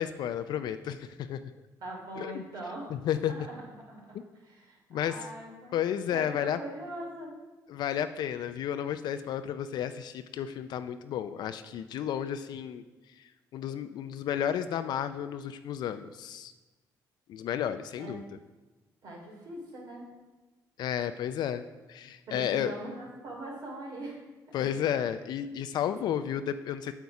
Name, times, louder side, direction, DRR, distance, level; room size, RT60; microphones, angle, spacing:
voice 1, 0.0-1.4 2.2-2.4 2.9-3.3 4.1-4.2 4.9-5.2 5.7-6.6 7.7-12.8 13.5-16.5 17.3-18.2 20.8-22.7 24.5-26.9, left 9 dB, 70° left, 10 dB, 0.4 m, -32 dB
voice 2, 1.8-3.0 3.2-3.6 3.9-5.7 6.1-7.4 18.0-18.2 19.0-20.1 22.3-24.2 24.6-24.7, right 1 dB, 70° right, -1 dB, 2.7 m, -42 dB
8.0 x 7.0 x 4.7 m, 1.2 s
cardioid pair, 80°, 8 cm